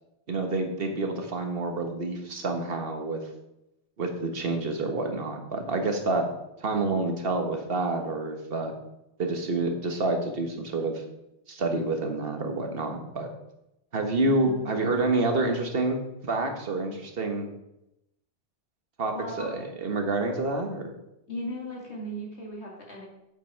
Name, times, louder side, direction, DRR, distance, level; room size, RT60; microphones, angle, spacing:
voice 1, 0.3-3.2 4.0-6.3 6.6-8.7 9.2-11.0 11.5-13.3 13.9-17.5 19.0-20.9, right 2 dB, 60° right, 4 dB, 1.6 m, -28 dB
voice 2, 14.3-14.7 19.1-19.6 21.3-23.1, equal, 75° left, -2 dB, 2.9 m, -37 dB
8.3 x 7.9 x 4.6 m, 0.87 s
omnidirectional pair, 1.1 m